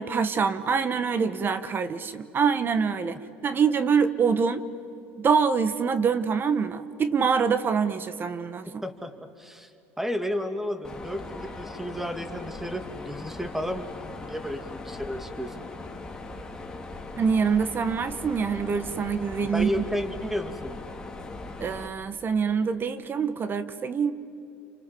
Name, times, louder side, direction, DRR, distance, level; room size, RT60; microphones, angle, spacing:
voice 1, 0.0-4.6 5.2-8.8 17.2-19.7 21.6-24.1, right 6 dB, 35° right, 13 dB, 1.4 m, -25 dB
voice 2, 8.8-9.7 10.0-15.7 19.5-20.8, equal, 5° right, 8 dB, 2.4 m, -32 dB
Mechanisms, 10.8-21.9, left 2 dB, 10° left, 3.6 m, -39 dB
29.0 x 25.5 x 7.7 m, 2.7 s
supercardioid pair, 90°, 6 cm